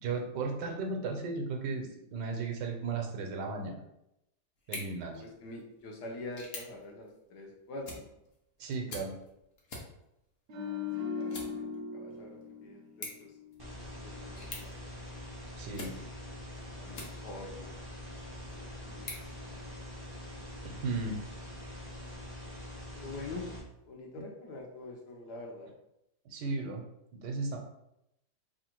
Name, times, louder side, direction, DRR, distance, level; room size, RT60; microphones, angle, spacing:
voice 1, 0.0-3.7 4.7-5.2 8.6-9.1 15.6-15.9 20.6-21.2 26.3-26.8 27.1-27.6, right 4 dB, 80° right, 2 dB, 1.3 m, -35 dB
sound 1, 4.6-17.6 18.1-20.1, left 2 dB, 45° left, 0.8 m, -49 dB
voice 2, 5.1-8.0 10.6-11.6 11.9-13.3 13.7-14.7 16.7-17.7 18.5-19.7 23.0-23.4 23.9-25.7, left 2 dB, 75° left, 0 dB, 1.4 m, -45 dB
sound 2, 10.5-13.8 14.1-14.3, left 6 dB, 60° right, 0.9 m, -39 dB
sound 3, 13.6-23.6, left 1 dB, 40° right, 0.3 m, -44 dB
3.4 x 2.5 x 4.4 m, 0.83 s
omnidirectional pair, 1.8 m